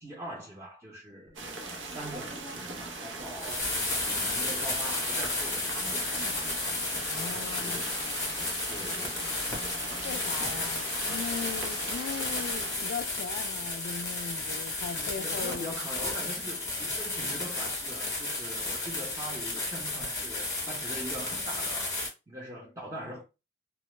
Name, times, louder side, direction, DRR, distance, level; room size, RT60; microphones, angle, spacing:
voice 1, 0.0-3.6 4.0-6.6 7.1-8.0 8.7-9.4 14.9-22.0 22.3-23.2, right 1 dB, 15° right, 0.7 m, -42 dB
sound 1, 1.3-12.8, right 3 dB, 80° right, 0.6 m, -40 dB
sound 2, 3.2-22.1, left 2 dB, 15° left, 0.9 m, -33 dB
voice 2, 7.0-7.9 10.0-15.7, left 6 dB, 80° left, 0.3 m, -39 dB
sound 3, 7.0-12.5, left 3 dB, 30° left, 0.6 m, -45 dB
2.1 x 2.1 x 3.0 m
head